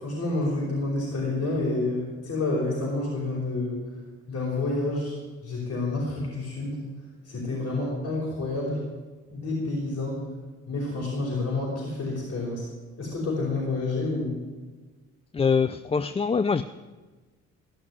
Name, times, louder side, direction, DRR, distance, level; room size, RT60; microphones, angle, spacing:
voice 1, 0.0-3.8 4.3-5.2 5.4-6.8 7.2-8.8 9.3-10.3 10.7-12.7 13.0-14.4, left 2 dB, 55° left, -5 dB, 5.2 m, -29 dB
voice 2, 15.3-16.6, left 5 dB, 20° left, 13 dB, 0.4 m, -24 dB
14.5 x 6.1 x 9.7 m, 1.3 s
cardioid pair, 90°, 30 cm